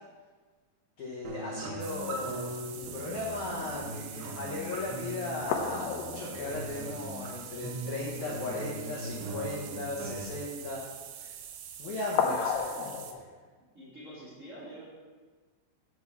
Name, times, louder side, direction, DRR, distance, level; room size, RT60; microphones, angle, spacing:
voice 1, 1.0-10.8 11.2-11.3 11.8-12.9, left 2 dB, 70° left, -4 dB, 1.8 m, -37 dB
sound 1, 1.2-10.2, right 1 dB, 70° right, 2.8 m, -40 dB
sound 2, 1.8-13.1, right 9 dB, 85° right, 3.0 m, -45 dB
sound 3, 5.0-5.1 5.5-7.8 8.1-8.2 8.5-8.7 12.2-13.2, left 6 dB, 85° left, 3.0 m, -33 dB
voice 2, 13.6-14.8, right 1 dB, 30° right, -10 dB, 1.6 m, -47 dB
8.2 x 4.7 x 7.0 m, 1.4 s
omnidirectional pair, 5.1 m